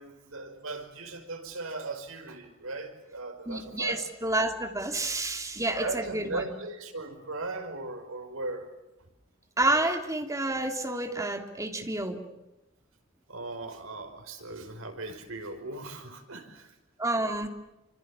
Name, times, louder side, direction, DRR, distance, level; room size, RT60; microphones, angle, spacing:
voice 1, 0.0-4.1 5.8-8.7 11.8-11.9 13.3-16.8, right 2 dB, 90° right, 5.3 m, -38 dB
voice 2, 3.5-6.4 9.6-12.2 17.0-17.5, right 2 dB, 15° right, 3.0 m, -29 dB
27.5 x 26.5 x 7.4 m
head